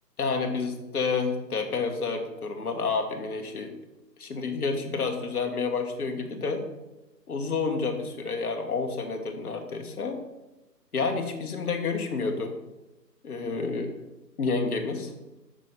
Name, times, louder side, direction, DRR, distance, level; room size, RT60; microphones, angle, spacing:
voice 1, 0.2-3.7 4.2-6.6 7.3-10.2 10.9-12.5 13.2-13.9 14.4-15.1, left 4 dB, 60° left, 4 dB, 1.5 m, -29 dB
7.5 x 6.2 x 4.2 m, 0.99 s
figure-of-eight pair, 165°, 50 cm